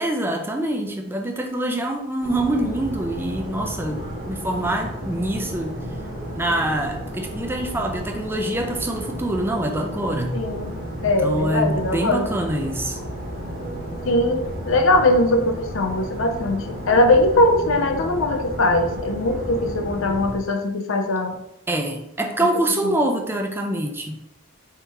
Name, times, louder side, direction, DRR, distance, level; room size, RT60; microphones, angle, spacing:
voice 1, 0.0-4.0 4.3-5.8 6.3-10.4 11.2-13.0 21.7-24.2, right 1 dB, 10° right, 3 dB, 0.4 m, -25 dB
sound 1, 2.2-20.4, equal, 45° right, 1.0 m, -33 dB
voice 2, 10.3-10.8 11.0-12.3 14.1-21.4 22.8-23.0, left 1 dB, 65° left, 6 dB, 0.5 m, -20 dB
4.5 x 3.6 x 2.9 m, 0.86 s
head